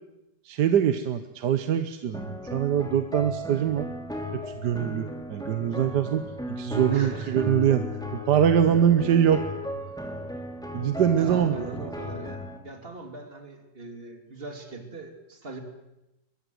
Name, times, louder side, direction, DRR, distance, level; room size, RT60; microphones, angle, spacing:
voice 1, 0.4-3.9 4.3-6.2 6.5-7.9 8.1-9.4 10.7-11.7, right 9 dB, 75° right, 10 dB, 1.6 m, -23 dB
sound 1, 2.1-12.6, left 1 dB, ahead, 3.1 m, -35 dB
voice 2, 6.9-7.5 11.2-12.4 12.6-15.6, right 3 dB, 35° right, 5 dB, 3.1 m, -40 dB
23.0 x 22.0 x 7.9 m, 0.93 s
omnidirectional pair, 1.8 m